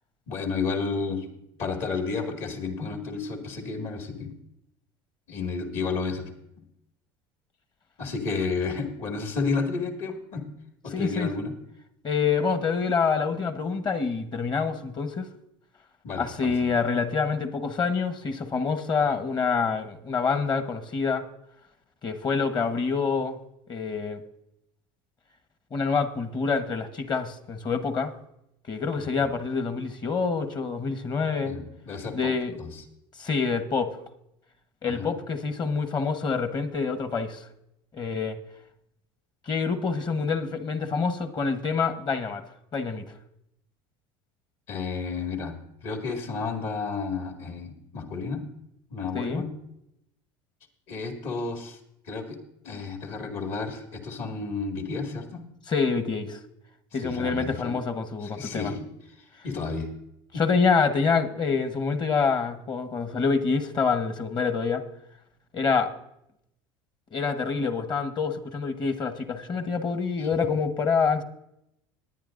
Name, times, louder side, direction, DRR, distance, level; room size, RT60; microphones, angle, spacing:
voice 1, 0.3-1.3 1.6-4.3 5.3-6.3 8.0-10.4 10.8-11.5 16.0-16.7 31.4-32.8 34.8-35.1 44.7-45.5 45.8-48.4 48.9-49.5 50.9-51.8 52.1-52.4 52.6-55.4 57.0-57.8 58.2-58.9 59.2-59.9 60.3-60.4 70.2-70.3, left 4 dB, 60° left, 3 dB, 2.1 m, -31 dB
voice 2, 10.9-11.3 12.0-15.3 16.2-21.2 22.0-23.4 23.7-24.2 25.7-28.1 28.7-31.5 32.1-32.6 33.2-34.0 34.8-37.4 37.9-38.4 39.5-42.4 42.7-43.0 49.1-49.4 55.7-56.4 56.9-58.7 60.4-64.8 65.5-65.9 67.1-71.2, left 5 dB, 35° left, 10 dB, 1.2 m, -26 dB
21.0 x 9.3 x 2.6 m, 0.80 s
supercardioid pair, 95°, 13 cm